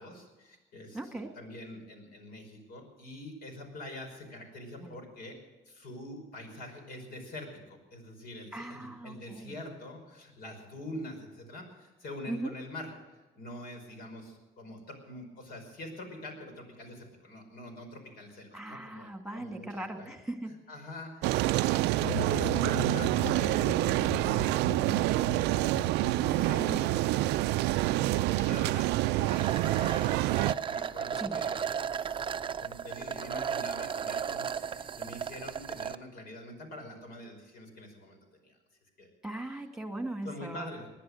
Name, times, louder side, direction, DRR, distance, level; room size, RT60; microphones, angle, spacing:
voice 1, 0.0-5.4 5.7-19.1 19.3-20.1 20.5-25.5 26.0-31.9 32.6-38.6 39.0-39.1 40.2-40.9, left 1 dB, 65° left, 4 dB, 5.2 m, -45 dB
voice 2, 0.9-1.3 4.8-5.0 8.5-9.6 12.3-12.5 18.5-20.5 26.6-26.8 31.2-31.4 39.2-40.7, right 1 dB, 5° right, 5 dB, 2.2 m, -39 dB
sound 1, 21.2-30.5, right 17 dB, 85° right, 0.4 m, -27 dB
sound 2, 22.0-28.9, left 10 dB, 45° left, 0.7 m, -41 dB
sound 3, 29.3-36.0, right 7 dB, 30° right, 0.6 m, -35 dB
20.0 x 11.0 x 6.5 m, 1.2 s
cardioid pair, 110°, 17 cm